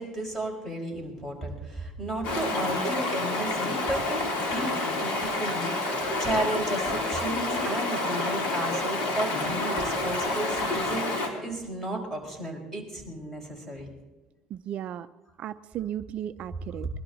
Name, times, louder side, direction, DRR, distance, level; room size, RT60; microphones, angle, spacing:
voice 1, 0.0-4.2 4.5-13.9, right 1 dB, 10° left, 1 dB, 5.4 m, -34 dB
Stream, 2.2-11.3, left 2 dB, 65° left, 4.1 m, -28 dB
voice 2, 14.5-15.1 15.4-16.9, right 11 dB, 55° right, 11 dB, 0.5 m, -35 dB
21.5 x 12.5 x 4.0 m, 1.1 s
cardioid pair, 115°, 3 cm